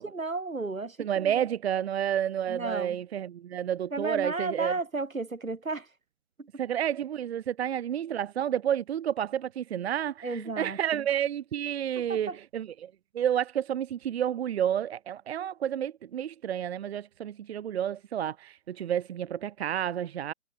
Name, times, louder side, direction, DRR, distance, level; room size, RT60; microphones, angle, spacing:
voice 1, 0.1-1.4 2.5-3.0 3.9-5.9 6.4-6.6 10.2-11.1 12.1-12.4, right 3 dB, 90° right, 4.4 m, -33 dB
voice 2, 1.0-4.7 6.6-20.3, right 10 dB, 55° right, 1.0 m, -30 dB
figure-of-eight pair, 130°, 39 cm